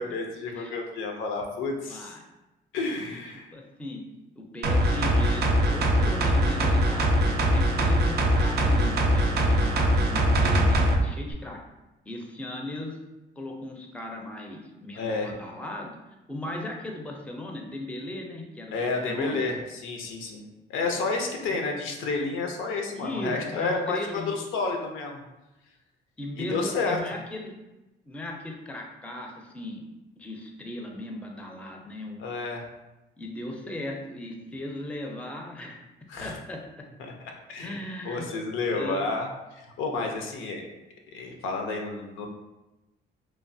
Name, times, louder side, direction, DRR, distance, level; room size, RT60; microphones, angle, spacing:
voice 1, 0.0-2.2 2.7-3.5 15.0-15.3 18.7-20.4 20.7-25.2 26.4-27.0 32.2-32.6 36.1-36.3 37.0-37.1 37.5-37.8 38.1-40.6 41.1-42.3, left 3 dB, 85° left, 2 dB, 0.5 m, -30 dB
voice 2, 1.9-2.2 3.1-3.2 3.5-4.0 4.4-11.6 12.1-13.0 13.4-15.9 16.3-19.5 21.5-21.6 22.9-24.4 26.2-27.5 28.1-29.8 30.2-32.2 33.2-35.8 36.2-36.6 37.6-38.3 38.7-39.1, left 1 dB, 5° left, 1 dB, 0.4 m, -37 dB
sound 1, 4.6-11.0 11.3-11.4, equal, 55° right, 0.4 m, -22 dB
3.0 x 2.0 x 2.6 m, 1.0 s
cardioid pair, 90°, 20 cm